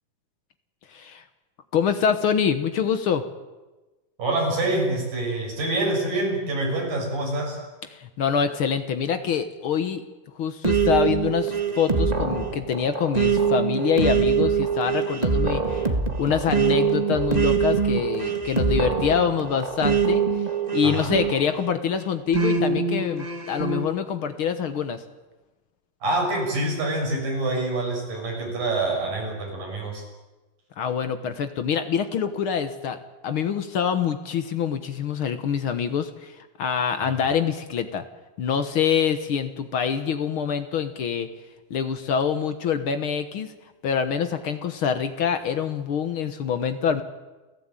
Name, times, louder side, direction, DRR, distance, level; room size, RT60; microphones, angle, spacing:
voice 1, 0.9-1.2 1.7-3.2 7.9-10.0 10.3-15.9 16.2-20.2 20.7-25.0 30.8-38.0 38.4-41.3 41.7-43.5 43.8-47.0, left 7 dB, 65° left, 9 dB, 1.4 m, -25 dB
voice 2, 4.2-7.6 20.8-21.1 26.0-30.0, right 2 dB, 80° right, -1 dB, 8.7 m, -26 dB
sound 1, 10.6-21.7 22.3-23.9, right 5 dB, 60° right, 0.4 m, -24 dB
29.5 x 15.0 x 9.1 m, 1.2 s
omnidirectional pair, 3.9 m